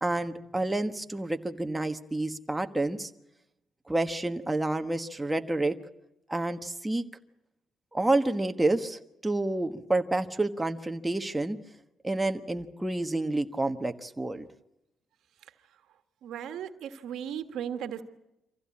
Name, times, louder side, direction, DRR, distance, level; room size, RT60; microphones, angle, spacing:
voice 1, 0.0-3.1 3.9-5.8 6.3-7.0 7.9-11.6 12.0-14.5, right 2 dB, 10° right, 6 dB, 1.3 m, -29 dB
voice 2, 16.2-18.0, right 9 dB, 80° right, 9 dB, 1.5 m, -36 dB
25.0 x 15.5 x 8.5 m, 0.90 s
cardioid pair, 90°, 0 cm